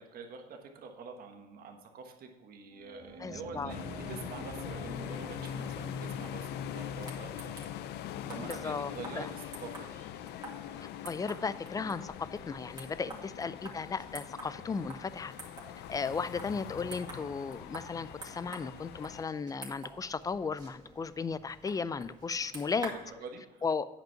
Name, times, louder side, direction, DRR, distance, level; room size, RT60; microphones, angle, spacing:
voice 1, 0.0-7.8 8.3-10.0 11.3-11.4 13.0-13.2 22.8-23.6, right 4 dB, 60° right, 3 dB, 1.4 m, -46 dB
sound 1, 2.7-7.3, right 2 dB, 40° right, 2.2 m, -47 dB
voice 2, 3.2-3.7 8.4-9.3 11.0-15.3 15.9-22.9 23.6-23.9, left 5 dB, 20° left, 15 dB, 0.4 m, -35 dB
sound 2, 3.7-19.2, left 10 dB, 75° left, 0.5 m, -42 dB
sound 3, 4.9-23.1, right 2 dB, 25° right, 2.2 m, -50 dB
9.1 x 5.3 x 5.8 m, 1.2 s
cardioid pair, 110°, 17 cm